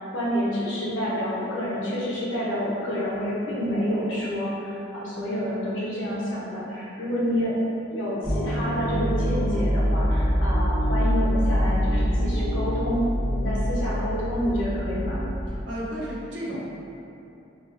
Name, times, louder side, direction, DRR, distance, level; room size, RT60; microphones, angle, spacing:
voice 1, 0.0-7.5 7.9-13.0 13.3-15.2, equal, 80° left, -8 dB, 0.7 m, -28 dB
sound 1, 8.2-15.5, equal, 25° right, 0.6 m, -25 dB
voice 2, 15.5-16.6, equal, 65° right, -6 dB, 0.6 m, -33 dB
2.7 x 2.4 x 2.5 m, 2.8 s
head